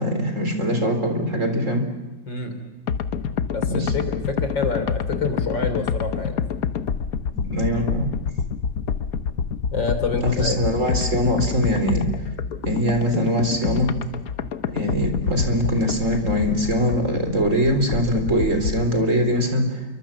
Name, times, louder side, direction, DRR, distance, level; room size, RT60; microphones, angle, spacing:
voice 1, 0.0-1.9 3.7-3.9 7.3-8.1 10.2-12.1 12.7-13.9 14.7-19.8, equal, 40° right, 6 dB, 4.2 m, -22 dB
voice 2, 2.3-2.7 3.5-6.5 9.7-10.6, left 4 dB, 70° left, 8 dB, 4.1 m, -27 dB
sound 1, 2.9-18.9, left 6 dB, 55° left, 1.3 m, -27 dB
29.0 x 24.5 x 7.4 m, 1.2 s
omnidirectional pair, 2.1 m